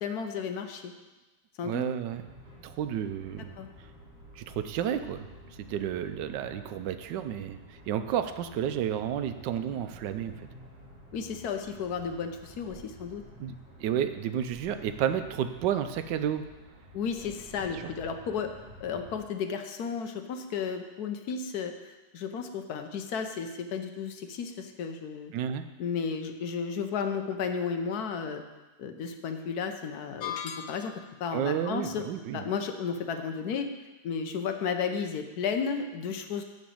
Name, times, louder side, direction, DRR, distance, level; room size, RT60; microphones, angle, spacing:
voice 1, 0.0-0.9 1.6-1.8 3.6-3.7 11.1-13.2 16.9-18.5 18.8-21.7 22.1-25.3 25.8-28.4 28.8-32.0 32.3-33.7 34.0-36.4, left 6 dB, 70° left, 6 dB, 1.2 m, -33 dB
voice 2, 1.6-2.2 2.6-3.6 4.4-5.3 5.7-7.6 7.9-10.3 13.4-16.4 17.7-17.9 25.3-25.6 31.3-32.5, right 9 dB, 85° right, 10 dB, 1.3 m, -31 dB
sound 1, 2.1-19.2, left 1 dB, 50° right, 3.1 m, -51 dB
sound 2, 30.2-31.2, left 9 dB, 85° left, 1.4 m, -38 dB
10.5 x 4.0 x 7.7 m, 1.1 s
omnidirectional pair, 1.8 m